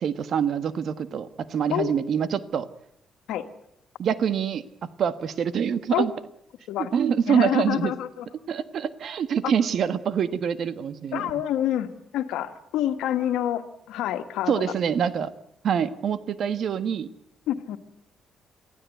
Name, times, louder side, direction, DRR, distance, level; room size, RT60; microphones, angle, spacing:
voice 1, 0.0-2.7 4.0-4.7 5.0-6.1 6.9-7.9 8.5-11.3 14.5-15.3 15.6-17.1, right 7 dB, 60° right, 13 dB, 1.3 m, -25 dB
voice 2, 7.3-8.3 11.1-14.7 17.5-17.8, left 12 dB, 90° left, 9 dB, 1.7 m, -27 dB
24.0 x 15.5 x 9.4 m, 0.75 s
cardioid pair, 90°, 0 cm